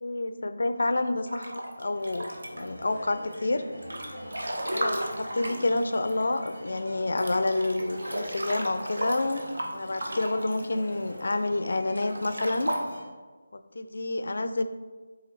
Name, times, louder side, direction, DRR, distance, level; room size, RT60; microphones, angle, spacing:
voice 1, 0.0-3.6 4.7-9.4 9.7-12.7 13.5-14.6, left 2 dB, 55° left, 10 dB, 0.4 m, -29 dB
Breathing / Bathtub (filling or washing) / Splash splatter, 1.3-2.8 3.3-6.5 6.8-6.9 7.1-11.3 11.9-12.8, right 1 dB, 60° right, 0.9 m, -35 dB
sound 1, 1.9-13.1, equal, 80° right, 1.8 m, -44 dB
8.1 x 3.6 x 3.2 m, 1.4 s
figure-of-eight pair, 155°, 0 cm